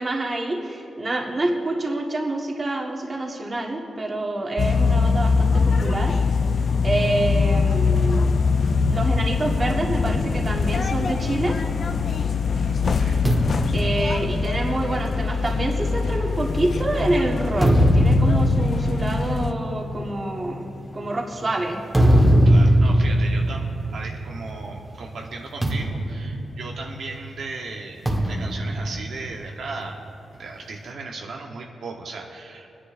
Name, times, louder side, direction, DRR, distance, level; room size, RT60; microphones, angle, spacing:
voice 1, 0.0-6.3 6.8-8.4 8.9-11.6 13.7-21.8, right 2 dB, 30° right, 0 dB, 1.5 m, -27 dB
sound 1, 4.6-19.5, left 4 dB, 50° left, 0.5 m, -23 dB
sound 2, 13.2-16.8 17.4-24.8 25.0-25.3 25.6-27.2 28.1-29.8, equal, 10° right, 1.4 m, -21 dB
voice 2, 22.4-30.0 30.3-32.7, right 3 dB, 70° right, 0 dB, 1.0 m, -36 dB
25.0 x 10.0 x 2.6 m, 2.7 s
cardioid pair, 105°, 0 cm